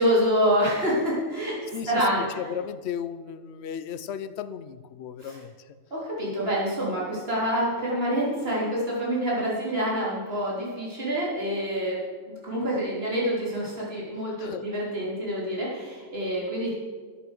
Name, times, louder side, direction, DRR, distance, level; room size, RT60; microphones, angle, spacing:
voice 1, 0.0-2.4 5.2-5.4 5.9-12.0 12.4-16.7, equal, 45° right, -6 dB, 4.0 m, -27 dB
voice 2, 1.7-5.8 14.4-14.6, left 8 dB, 60° left, 13 dB, 0.9 m, -35 dB
12.5 x 8.3 x 6.7 m, 1.5 s
omnidirectional pair, 1.4 m